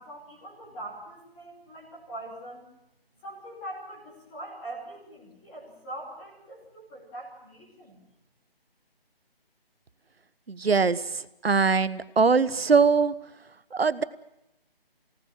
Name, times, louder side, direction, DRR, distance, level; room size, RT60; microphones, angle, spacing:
voice 1, 0.0-2.6 3.2-8.0, right 1 dB, 5° left, -5 dB, 2.9 m, -42 dB
voice 2, 10.5-13.1 13.7-14.0, right 5 dB, 75° right, 15 dB, 1.3 m, -22 dB
24.0 x 18.5 x 7.5 m, 0.86 s
figure-of-eight pair, 180°, 30 cm